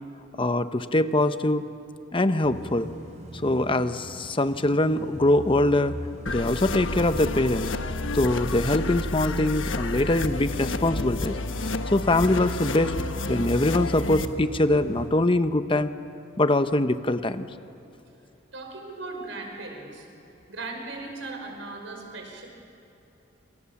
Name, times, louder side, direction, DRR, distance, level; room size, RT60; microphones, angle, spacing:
voice 1, 0.4-1.6 2.1-2.9 3.4-5.9 6.3-7.7 8.1-11.4 11.9-12.9 13.3-15.9 16.4-17.5, left 1 dB, 25° left, 10 dB, 0.9 m, -23 dB
sound 1, 2.4-15.1, equal, 35° right, 4.3 m, -42 dB
sound 2, 6.3-14.3, left 2 dB, 70° left, 1.2 m, -30 dB
voice 2, 18.5-20.1 20.5-22.5, right 3 dB, 70° right, 2 dB, 5.8 m, -38 dB
27.5 x 27.0 x 7.3 m, 2.9 s
head